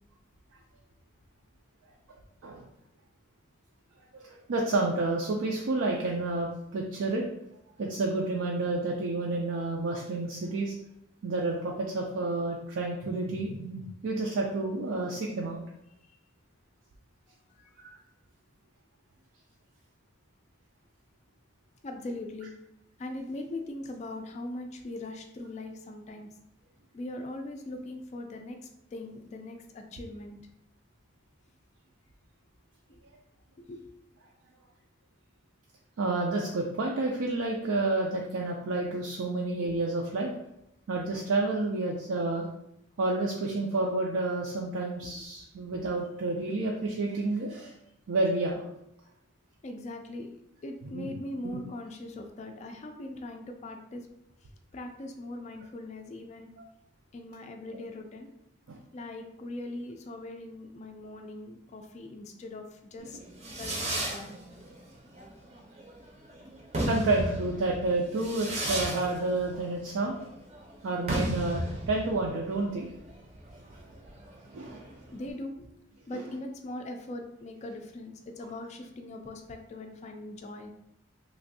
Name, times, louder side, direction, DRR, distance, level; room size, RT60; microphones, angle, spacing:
voice 1, 4.1-7.2 7.8-10.7 11.2-15.6 36.0-40.3 40.9-42.5 43.0-47.7 48.1-48.7 50.9-51.1 51.4-51.6 58.7-58.8 66.9-70.2 70.8-72.9 73.8-73.9 74.5-74.9 76.1-76.2, right 2 dB, 80° right, -1 dB, 0.4 m, -30 dB
voice 2, 21.8-22.5 23.0-26.3 26.9-30.4 33.6-33.8 45.0-45.1 49.6-50.3 50.6-54.0 54.7-56.5 57.1-58.3 58.9-63.2 63.5-64.4 75.1-75.7 76.1-80.7, left 2 dB, 35° left, 4 dB, 0.3 m, -40 dB
Fireworks, 63.1-75.3, right 1 dB, 35° right, 0.5 m, -35 dB
3.1 x 2.5 x 2.6 m, 0.80 s
head